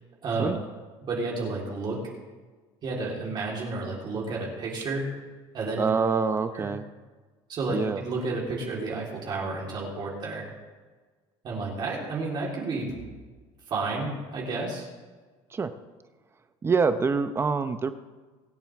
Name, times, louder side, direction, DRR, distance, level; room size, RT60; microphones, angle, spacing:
voice 1, 1.0-2.0 2.8-5.1 5.5-5.9 6.5-6.7 7.5-10.4 11.4-13.0 13.7-14.9, right 3 dB, 40° right, -3 dB, 3.8 m, -31 dB
voice 2, 5.8-6.9 7.7-8.0 15.5-15.7 16.6-17.9, right 5 dB, 20° right, 10 dB, 0.7 m, -25 dB
24.0 x 9.0 x 3.6 m, 1.4 s
cardioid pair, 135°, 12 cm